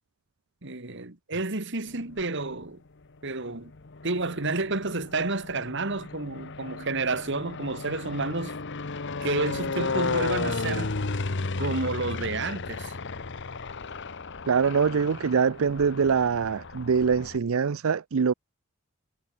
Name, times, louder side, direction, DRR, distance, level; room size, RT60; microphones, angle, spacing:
voice 1, 0.6-2.8 3.2-3.7 4.0-8.6 9.2-11.0 11.6-12.9, right 3 dB, 60° right, 2.3 m, -30 dB
sound 1, 1.9-2.6 3.4-17.4, left 3 dB, 60° left, 1.1 m, -34 dB
voice 2, 14.5-18.3, right 6 dB, 75° right, 0.5 m, -24 dB
head